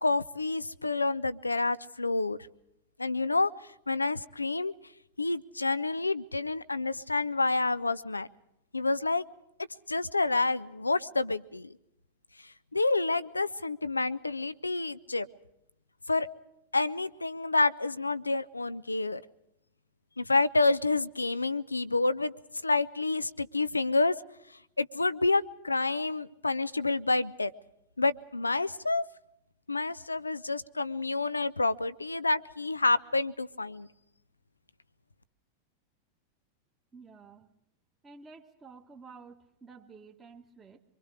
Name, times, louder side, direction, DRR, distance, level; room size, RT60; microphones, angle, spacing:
voice 1, 0.0-2.4 3.0-3.5 3.9-4.7 5.2-8.3 8.7-9.2 9.9-11.7 12.7-15.3 16.1-16.3 16.7-19.2 20.2-22.3 22.6-24.1 24.8-27.5 28.0-29.0 29.7-33.9, left 3 dB, 80° left, 16 dB, 0.7 m, -28 dB
voice 2, 36.9-37.5 38.0-40.8, right 4 dB, 15° right, 0 dB, 1.8 m, -51 dB
25.0 x 24.0 x 4.9 m, 0.80 s
figure-of-eight pair, 90°, 0 cm